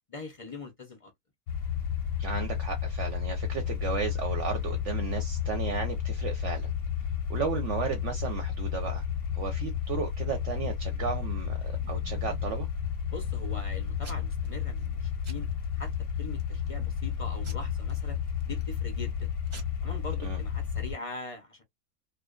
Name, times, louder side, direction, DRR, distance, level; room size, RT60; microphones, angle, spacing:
voice 1, 0.1-1.1 13.1-15.5 15.7-15.9 16.2-19.3 19.8-21.6, left 3 dB, 45° left, 0.4 m, -42 dB
sound 1, 1.5-20.9, left 8 dB, 70° left, 0.8 m, -32 dB
voice 2, 2.2-6.7 7.3-9.0 9.3-12.7 20.2-20.4, right 6 dB, 65° right, 0.8 m, -34 dB
Packing tape duct tape / Tearing, 11.4-12.6 13.1-13.6 14.0-14.5 14.8-15.0 15.2-15.9 16.4-16.8 17.4-18.7 19.2-19.3 19.5-19.6, right 4 dB, 35° right, 0.5 m, -50 dB
2.5 x 2.2 x 2.2 m
omnidirectional pair, 1.5 m